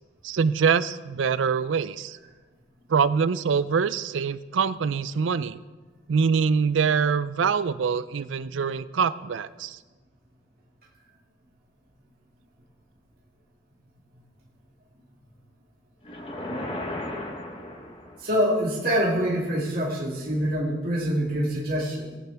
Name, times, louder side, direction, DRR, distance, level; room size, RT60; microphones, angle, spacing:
voice 1, 0.2-2.2 2.9-5.6 6.1-9.8, right 6 dB, 85° right, 15 dB, 0.4 m, -24 dB
sound 1, 16.0-18.4, left 1 dB, 25° left, 1.1 m, -35 dB
voice 2, 18.2-22.2, equal, 50° right, -5 dB, 2.1 m, -25 dB
18.0 x 8.5 x 3.4 m, 1.3 s
head